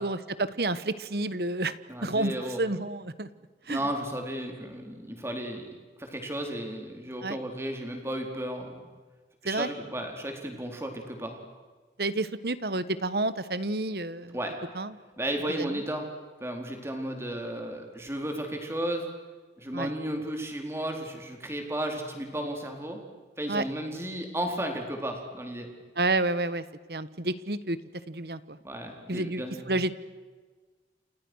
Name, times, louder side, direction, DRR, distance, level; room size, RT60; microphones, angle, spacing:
voice 1, 0.0-1.8 2.0-3.3 3.7-3.8 7.2-7.4 9.4-9.7 12.0-14.4 14.7-14.9 19.7-19.9 23.5-23.6 26.0-26.6 26.9-27.8 28.1-28.6 29.1-29.4 29.7-29.9, right 2 dB, 60° right, 14 dB, 1.3 m, -29 dB
voice 2, 1.9-2.6 3.7-5.7 6.0-8.8 9.4-11.4 14.3-14.6 15.2-16.1 16.4-19.1 19.6-23.0 23.4-25.7 28.6-29.8, right 1 dB, 15° right, 3 dB, 4.3 m, -34 dB
30.0 x 28.0 x 6.4 m, 1.4 s
head